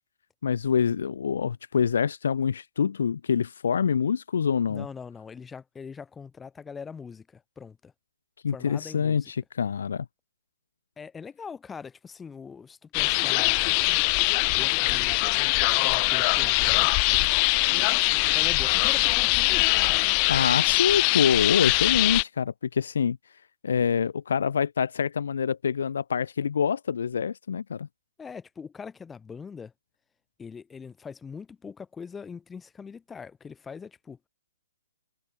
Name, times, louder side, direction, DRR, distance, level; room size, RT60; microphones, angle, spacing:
voice 1, 0.4-4.9 8.4-10.1 20.3-23.2 23.6-27.9, left 7 dB, 75° left, 1.2 m, -26 dB
voice 2, 4.7-7.9 8.5-9.3 11.0-13.6 14.5-15.2 15.8-17.2 18.3-20.1 28.2-29.7 30.4-34.2, left 6 dB, 10° left, 7.5 m, -42 dB
sound 1, 12.9-22.2, left 40 dB or more, 30° left, 0.4 m, -22 dB
hypercardioid pair, 155°, 0 cm